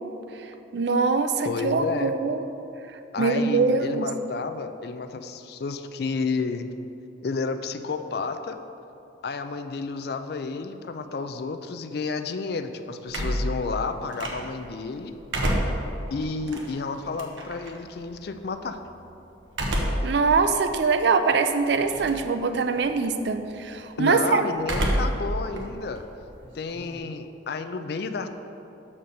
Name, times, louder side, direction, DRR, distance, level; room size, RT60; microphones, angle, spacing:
voice 1, 0.7-2.4 3.2-4.1 20.0-24.4, right 4 dB, 65° right, 8 dB, 0.4 m, -23 dB
voice 2, 1.4-2.2 3.1-6.7 7.2-8.6 9.2-15.1 16.1-18.8 24.0-26.0 26.5-28.3, left 4 dB, 55° left, 8 dB, 0.4 m, -31 dB
sound 1, 13.1-14.7 15.1-17.7 19.5-20.2 20.7-20.8 21.8-22.3 22.6-23.0 24.6-25.3 25.6-27.0, right 1 dB, 85° right, 1.0 m, -28 dB
6.7 x 4.3 x 6.3 m, 2.9 s
head